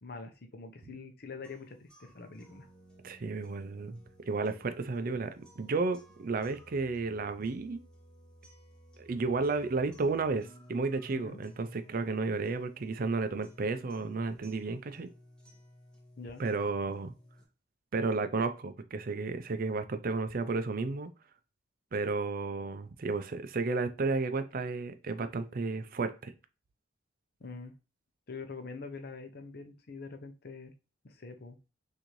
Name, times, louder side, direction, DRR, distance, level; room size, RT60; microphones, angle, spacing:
voice 1, 0.0-2.7 11.1-11.4 16.2-16.4 27.4-27.7 28.3-30.7 31.0-31.6, left 4 dB, 55° left, 0.7 m, -44 dB
sound 1, 1.4-17.4, equal, 5° left, 1.0 m, -57 dB
voice 2, 3.0-4.0 4.3-7.8 9.0-15.1 16.4-17.1 17.9-21.1 21.9-26.3, right 3 dB, 50° right, 0.5 m, -32 dB
6.3 x 2.7 x 3.0 m
head